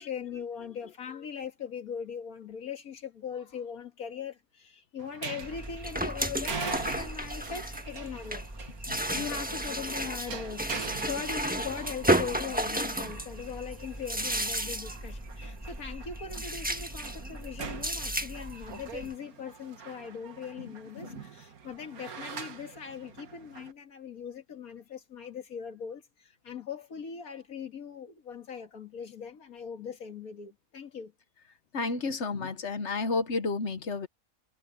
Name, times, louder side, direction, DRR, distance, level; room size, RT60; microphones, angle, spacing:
voice 1, 0.0-8.5 9.2-31.1, left 7 dB, 85° left, 2.3 m, -40 dB
sound 1, 5.0-23.7, right 6 dB, 80° right, 2.0 m, -44 dB
sound 2, 5.4-19.1, right 1 dB, 5° right, 1.4 m, -33 dB
voice 2, 8.9-9.3 19.0-19.1 20.6-21.2 31.7-34.1, left 3 dB, 55° left, 1.4 m, -33 dB
omnidirectional pair, 1.5 m